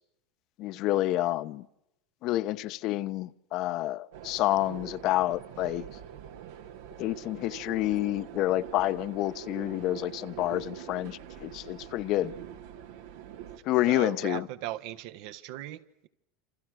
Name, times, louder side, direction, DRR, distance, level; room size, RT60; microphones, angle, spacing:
voice 1, 0.6-1.6 2.2-5.8 7.0-12.3 13.7-14.5, left 16 dB, 50° left, 0.9 m, -29 dB
sound 1, 4.1-13.6, right 10 dB, 85° right, 2.4 m, -44 dB
voice 2, 13.9-16.1, right 14 dB, 65° right, 1.3 m, -38 dB
28.0 x 27.5 x 6.5 m
supercardioid pair, 130°, 0 cm